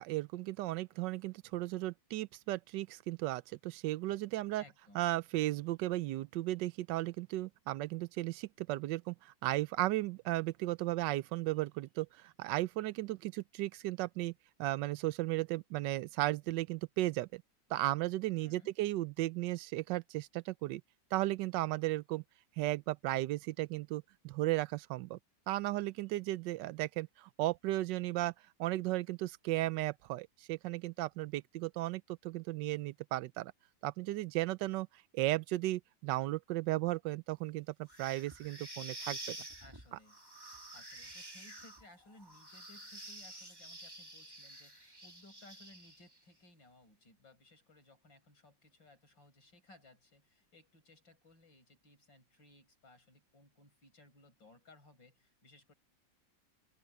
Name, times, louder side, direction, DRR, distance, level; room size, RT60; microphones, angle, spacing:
voice 1, 0.0-4.6 4.9-14.3 14.6-17.4 17.7-20.8 21.1-22.2 22.6-25.2 25.5-28.3 28.6-33.5 33.8-34.9 35.1-39.4, right 17 dB, 80° right, 1.2 m, -35 dB
voice 2, 4.6-5.1 18.4-18.7 39.6-40.2 40.7-55.7, left 2 dB, 90° left, 7.4 m, -61 dB
sound 1, 37.9-46.2, right 1 dB, 10° right, 3.1 m, -49 dB
open air
omnidirectional pair, 2.0 m